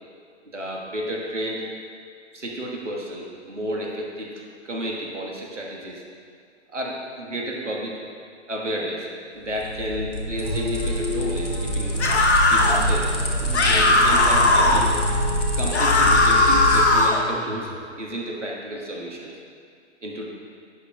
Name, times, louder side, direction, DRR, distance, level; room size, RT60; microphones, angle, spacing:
voice 1, 0.5-1.6 2.3-6.0 6.7-7.9 8.5-12.0 12.5-13.1 13.6-14.9 15.5-17.7 18.0-19.3 20.0-20.3, equal, 80° right, -2 dB, 1.6 m, -31 dB
sound 1, 9.5-17.1, equal, 85° left, 1.3 m, -26 dB
sound 2, 10.4-17.8, left 1 dB, 15° right, 1.4 m, -34 dB
sound 3, 12.0-12.8 13.5-14.8 15.7-17.2, left 2 dB, 65° left, 1.0 m, -18 dB
11.0 x 8.5 x 2.3 m, 2.3 s
figure-of-eight pair, 125°, 36 cm